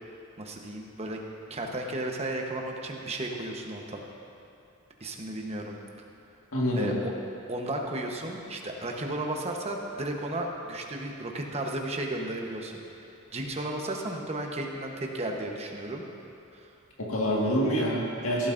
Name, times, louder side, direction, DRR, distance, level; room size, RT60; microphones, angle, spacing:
voice 1, 0.4-1.2 1.5-4.0 5.0-5.8 6.7-7.1 7.5-12.8 13.3-16.1 16.6-16.7, right 1 dB, 30° right, 1 dB, 1.1 m, -34 dB
voice 2, 6.5-6.9 17.0-18.5, equal, 80° left, -3 dB, 1.8 m, -26 dB
16.5 x 12.0 x 2.6 m, 2.6 s
head